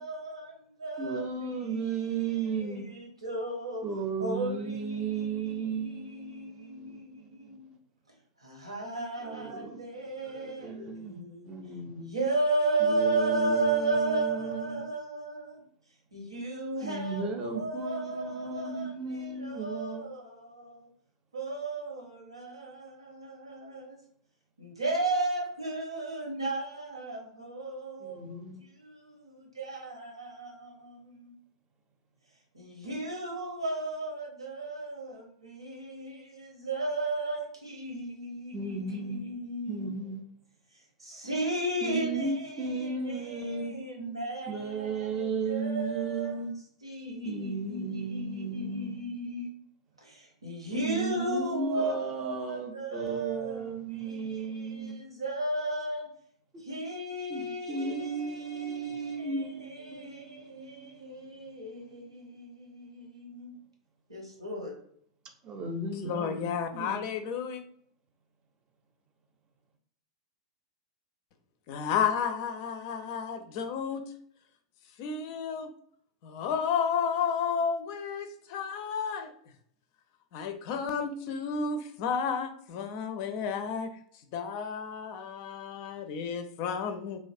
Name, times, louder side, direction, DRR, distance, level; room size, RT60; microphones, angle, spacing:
voice 1, 0.0-3.8 4.2-7.7 8.4-11.6 12.0-15.6 16.1-20.9 21.3-24.0 24.6-31.3 32.5-39.9 40.7-49.5 50.0-56.1 56.6-63.5 64.1-64.7, right 2 dB, 85° right, 0.8 m, -35 dB
voice 2, 1.0-2.9 3.8-7.3 9.2-9.8 10.3-11.2 11.5-12.1 12.8-14.8 16.8-20.1 28.0-28.6 38.5-39.2 39.7-40.2 41.8-43.7 44.5-46.5 47.2-49.0 50.8-54.9 56.5-56.6 57.3-61.6 65.4-66.5 66.7-67.0, right 4 dB, 30° right, 0.6 m, -35 dB
voice 3, 66.0-67.6 71.7-74.0 75.0-75.7 76.2-79.3 80.3-83.9 84.3-87.2, left 6 dB, 50° left, 0.4 m, -32 dB
3.1 x 2.3 x 2.5 m
figure-of-eight pair, 90°, 3 cm